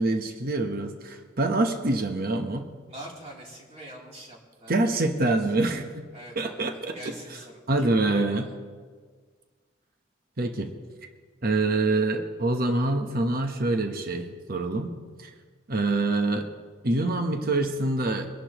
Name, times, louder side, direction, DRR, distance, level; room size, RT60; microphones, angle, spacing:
voice 1, 0.0-2.7 4.7-6.1 6.4-7.0 7.7-8.5 10.4-10.7 11.4-14.9 15.2-15.3 15.7-16.5 16.8-18.3, right 2 dB, 50° right, 5 dB, 1.0 m, -25 dB
voice 2, 2.9-5.0 5.3-5.4 6.1-8.5, right 1 dB, 35° right, -3 dB, 3.3 m, -44 dB
23.5 x 11.5 x 3.0 m, 1.6 s
head